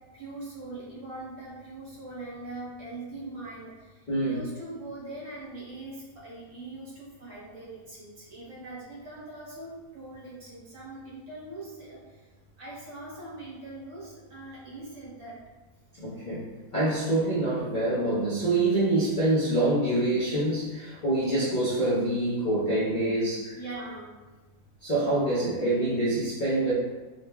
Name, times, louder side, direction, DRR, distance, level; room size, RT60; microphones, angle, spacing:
voice 1, 0.1-3.9 4.2-12.0 12.6-15.3 23.5-24.2, right 2 dB, 55° right, -7 dB, 1.2 m, -41 dB
voice 2, 4.1-4.4 16.0-16.5 16.7-23.6 24.8-26.7, right 1 dB, 40° left, -11 dB, 0.7 m, -26 dB
3.8 x 2.1 x 3.3 m, 1.3 s
omnidirectional pair, 1.7 m